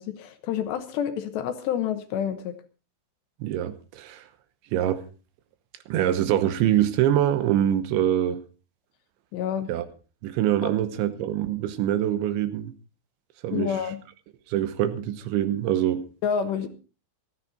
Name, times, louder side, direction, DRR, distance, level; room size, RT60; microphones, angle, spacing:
voice 1, 0.0-2.5 9.3-9.7 10.6-10.7 13.5-14.0 16.2-16.7, left 8 dB, 75° left, 2.9 m, -28 dB
voice 2, 3.4-4.2 4.7-5.0 5.9-8.4 9.7-9.9 10.2-12.7 13.4-13.8 14.5-16.1, right 11 dB, 80° right, 3.2 m, -24 dB
17.5 x 14.0 x 4.1 m
omnidirectional pair, 5.6 m